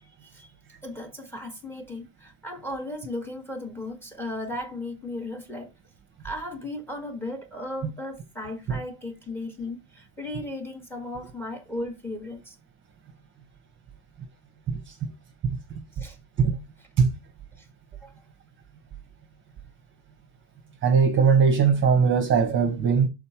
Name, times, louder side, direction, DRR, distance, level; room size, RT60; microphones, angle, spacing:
voice 1, 0.8-5.7 6.2-12.6 16.0-16.2 17.6-17.7 18.0-18.1, left 1 dB, 5° left, 1.8 m, -36 dB
voice 2, 20.8-23.1, right 6 dB, 25° right, 1.2 m, -20 dB
6.7 x 4.0 x 4.4 m
cardioid pair, 160°, 46 cm